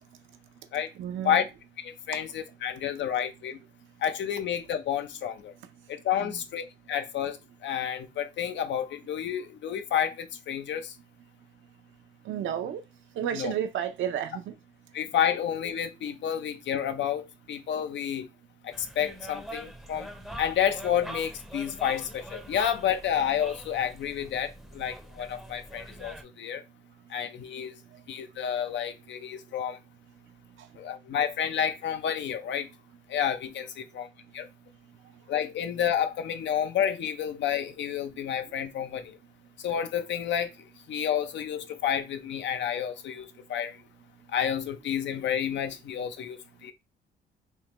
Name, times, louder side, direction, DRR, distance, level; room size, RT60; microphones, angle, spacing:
voice 1, 1.0-1.4 6.2-6.4 12.3-12.8 13.2-14.5, right 9 dB, 75° right, 0.6 m, -32 dB
voice 2, 1.8-3.6 4.0-5.5 5.9-10.9 13.3-13.5 14.9-18.3 18.6-20.1 20.4-26.6 27.1-27.7 28.1-29.8 30.8-32.7 33.1-34.1 34.3-34.5 35.3-39.2 39.6-40.5 40.9-43.8 44.3-46.7, left 9 dB, 65° left, 0.6 m, -30 dB
sound 1, 18.7-26.2, equal, ahead, 0.6 m, -44 dB
3.5 x 2.9 x 3.0 m
cardioid pair, 90°, 20 cm